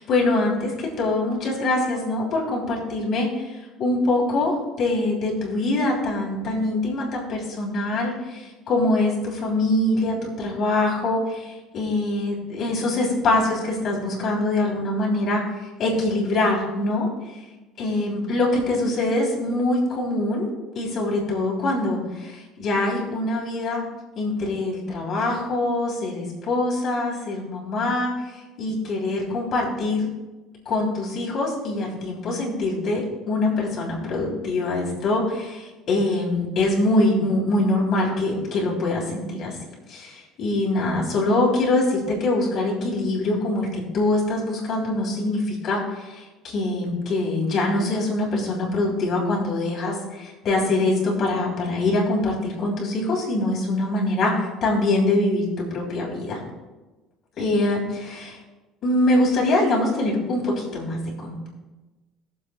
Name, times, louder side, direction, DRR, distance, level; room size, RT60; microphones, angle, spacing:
voice 1, 0.0-17.1 17.8-20.5 20.7-23.8 24.1-30.1 30.6-39.6 39.9-56.4 57.4-58.4 58.8-61.5, left 2 dB, 35° left, -3 dB, 3.1 m, -24 dB
22.0 x 7.5 x 2.3 m, 1.2 s
cardioid pair, 175°, 0 cm